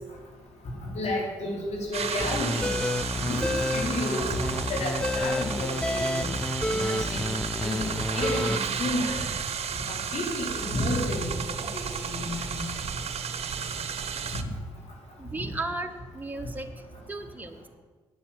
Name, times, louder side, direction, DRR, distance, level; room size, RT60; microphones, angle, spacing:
voice 1, 0.9-2.8 3.1-3.4 3.7-4.3 4.7-6.2 6.7-7.8 8.1-9.2 9.9-11.3 11.7-12.6, left 1 dB, 60° left, -3 dB, 4.8 m, -31 dB
sound 1, 1.9-14.4, right 7 dB, 55° right, 1.0 m, -33 dB
sound 2, 2.2-8.6, left 1 dB, 5° left, 0.6 m, -29 dB
voice 2, 15.2-16.7 17.1-17.6, right 2 dB, 15° right, 4 dB, 1.4 m, -35 dB
9.5 x 7.0 x 9.0 m, 1.3 s
supercardioid pair, 50°, 13 cm